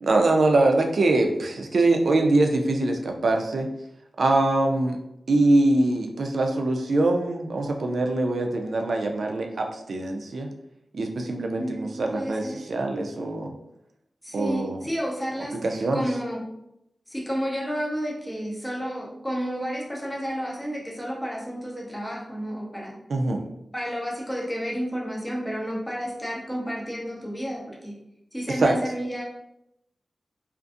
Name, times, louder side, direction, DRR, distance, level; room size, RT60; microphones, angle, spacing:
voice 1, 0.0-3.7 4.2-5.0 5.3-10.5 10.9-13.5 14.3-14.8 15.5-16.1 23.1-23.4 28.6-28.8, right 2 dB, 70° right, 3 dB, 0.3 m, -23 dB
voice 2, 11.6-12.6 14.2-15.6 15.9-16.4 17.1-23.0 23.7-27.9 28.3-29.2, equal, 10° left, -3 dB, 0.6 m, -31 dB
2.5 x 2.5 x 2.3 m, 0.81 s
wide cardioid pair, 115°, 0 cm